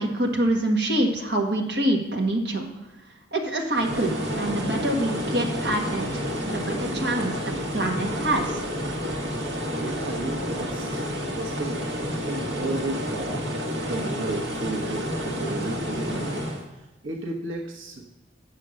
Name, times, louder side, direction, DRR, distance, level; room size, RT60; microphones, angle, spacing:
voice 1, 0.0-2.7 3.3-7.3 7.7-8.6, right 1 dB, 55° right, 0 dB, 1.6 m, -25 dB
sound 1, 3.7-16.7, equal, 75° right, 1.8 m, -30 dB
voice 2, 9.8-13.5 13.8-18.1, right 2 dB, 90° right, 0 dB, 1.2 m, -34 dB
8.7 x 6.7 x 6.3 m, 1.1 s
head